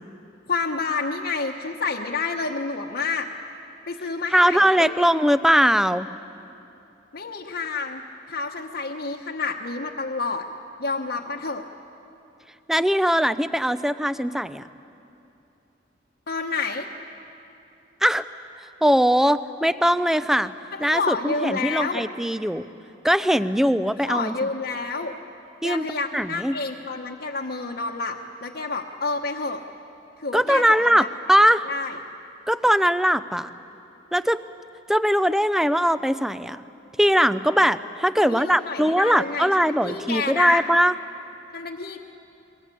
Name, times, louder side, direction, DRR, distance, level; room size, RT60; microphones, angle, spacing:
voice 1, 0.5-3.3 3.9-5.1 7.1-8.0 8.3-10.5 10.8-11.6 16.3-16.9 20.7-22.0 24.0-25.2 25.6-29.6 30.2-31.1 31.7-32.0 38.2-39.5 39.8-40.6 41.5-42.0, left 4 dB, 55° left, -1 dB, 1.1 m, -29 dB
voice 2, 4.3-6.1 12.7-14.6 18.0-18.3 18.8-20.5 20.8-22.7 23.0-24.3 25.6-25.9 26.1-26.6 30.3-31.6 32.5-33.5 34.1-34.4 34.9-36.6 37.0-40.9, equal, ahead, 13 dB, 0.5 m, -20 dB
28.0 x 22.0 x 8.5 m, 2.8 s
head